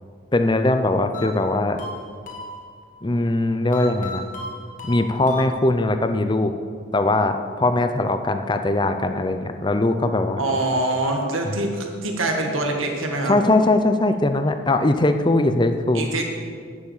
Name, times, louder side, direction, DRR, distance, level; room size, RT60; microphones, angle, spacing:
voice 1, 0.3-1.8 3.0-4.2 4.8-6.5 6.9-10.4 11.5-11.6 13.3-16.1, left 2 dB, 25° left, 8 dB, 0.6 m, -20 dB
sound 1, 1.1-3.0 3.7-6.0, left 2 dB, 40° left, 1.4 m, -36 dB
voice 2, 10.4-13.4 15.9-16.2, right 2 dB, 90° right, 2 dB, 1.8 m, -24 dB
10.5 x 7.3 x 7.3 m, 2.1 s
head